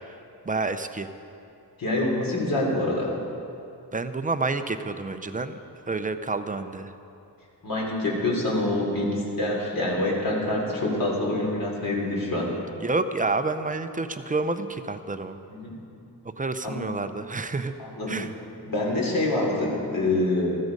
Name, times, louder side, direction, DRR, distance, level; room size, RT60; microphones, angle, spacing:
voice 1, 0.5-1.1 3.9-5.6 5.9-6.9 12.8-15.4 16.4-17.7 18.1-18.3, right 3 dB, 20° right, 9 dB, 0.5 m, -29 dB
voice 2, 1.8-3.2 7.6-12.5 15.5-15.7 16.6-16.8 17.8-18.2 18.6-20.6, left 2 dB, 60° left, -2 dB, 3.3 m, -26 dB
14.5 x 14.0 x 5.3 m, 2.7 s
wide cardioid pair, 140°, 39 cm